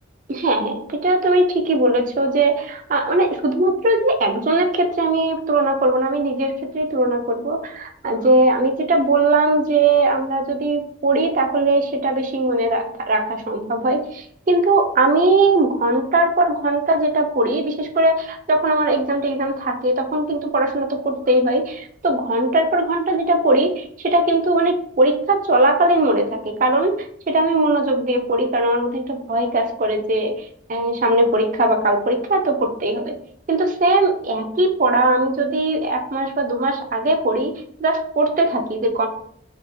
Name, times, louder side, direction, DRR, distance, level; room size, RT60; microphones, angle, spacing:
voice 1, 0.3-30.4 30.7-33.1 33.5-37.5 37.8-39.1, right 2 dB, 40° right, 5 dB, 0.4 m, -19 dB
3.5 x 2.3 x 2.9 m, 0.65 s
head